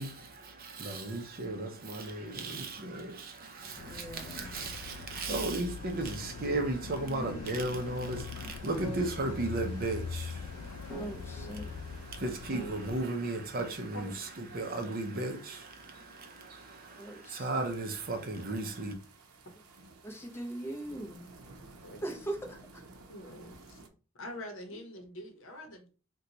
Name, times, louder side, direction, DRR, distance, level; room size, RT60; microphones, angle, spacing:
voice 1, 0.0-18.9, right 2 dB, 40° right, 0.5 m, -36 dB
sound 1, 3.8-13.0, left 5 dB, 85° left, 0.3 m, -42 dB
voice 2, 3.8-4.5 8.4-8.5 10.9-11.7 17.0-17.7 20.0-21.3 22.0-22.8, right 1 dB, 10° left, 0.6 m, -41 dB
sound 2, 5.9-23.9, right 2 dB, 80° right, 0.6 m, -55 dB
sound 3, 7.2-13.9, equal, 10° right, 1.0 m, -46 dB
voice 3, 23.1-23.8 24.1-25.9, left 1 dB, 60° left, 0.8 m, -45 dB
2.9 x 2.2 x 3.8 m
head